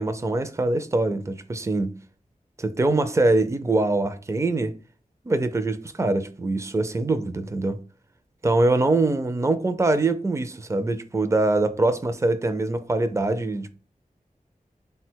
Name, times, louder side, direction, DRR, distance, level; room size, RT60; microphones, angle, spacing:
voice 1, 0.0-1.9 2.6-4.7 5.3-7.8 8.4-13.7, right 2 dB, 20° right, 0.4 m, -23 dB
3.9 x 2.2 x 4.4 m
wide cardioid pair, 65°, 15 cm